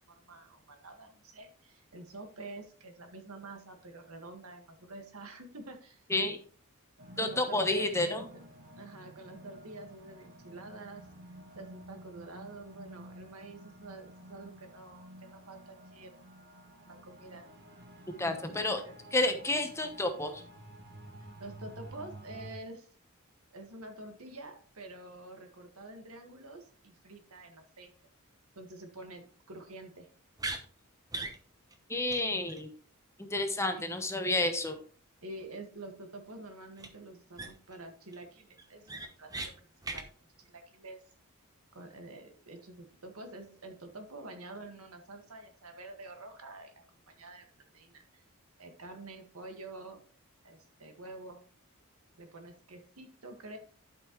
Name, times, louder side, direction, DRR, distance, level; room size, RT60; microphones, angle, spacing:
voice 1, 0.1-6.0 7.2-8.4 8.8-11.0 11.5-17.5 18.8-19.0 21.4-22.9 23.5-27.9 28.5-30.1 33.7-33.9 35.2-39.7 39.9-40.1 40.4-41.0 41.7-48.2 48.6-50.0 50.4-51.4 52.1-53.6, right 2 dB, 75° right, 5 dB, 1.7 m, -48 dB
sound 1, 7.0-22.5, right 1 dB, 50° right, 1.3 m, -51 dB
voice 2, 7.2-8.2 18.2-18.8 19.1-20.4 31.9-32.7 33.2-34.8, left 2 dB, 15° left, 6 dB, 1.0 m, -30 dB
sound 2, 30.4-30.6 31.1-31.4 31.7-31.8 32.1-32.2 32.5-32.6 36.8-36.9 37.3-37.7 38.1-38.2 38.6-39.5 39.8-40.0, right 2 dB, 15° right, 1.0 m, -38 dB
12.0 x 5.5 x 3.1 m, 0.43 s
head